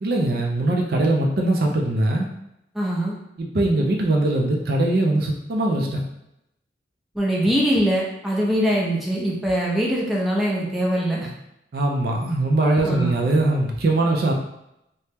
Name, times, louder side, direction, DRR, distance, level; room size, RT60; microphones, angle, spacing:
voice 1, 0.0-2.3 3.4-6.0 11.7-14.3, right 2 dB, 60° right, 1 dB, 0.4 m, -21 dB
voice 2, 2.7-3.2 7.1-11.3 12.8-13.1, equal, ahead, -5 dB, 0.5 m, -22 dB
2.8 x 2.1 x 3.4 m, 0.83 s
head